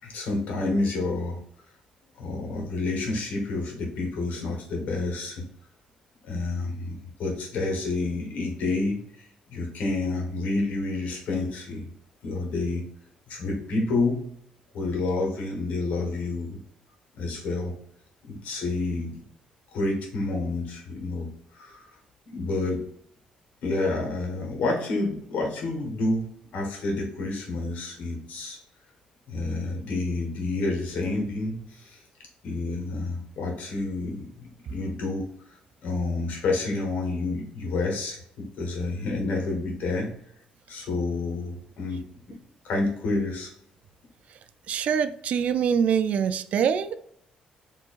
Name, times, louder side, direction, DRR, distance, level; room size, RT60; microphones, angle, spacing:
voice 1, 0.0-1.4 2.2-5.5 6.2-11.9 12.2-12.9 13.3-14.3 14.7-16.6 17.2-17.7 18.2-19.2 19.7-21.9 22.2-22.8 23.6-28.6 29.3-32.0 32.4-40.2 40.7-42.0 42.6-43.5, left 2 dB, 70° left, 0 dB, 1.5 m, -29 dB
voice 2, 44.7-47.0, right 7 dB, 55° right, 12 dB, 0.3 m, -24 dB
4.5 x 3.0 x 2.5 m, 0.68 s
cardioid pair, 135°, 3 cm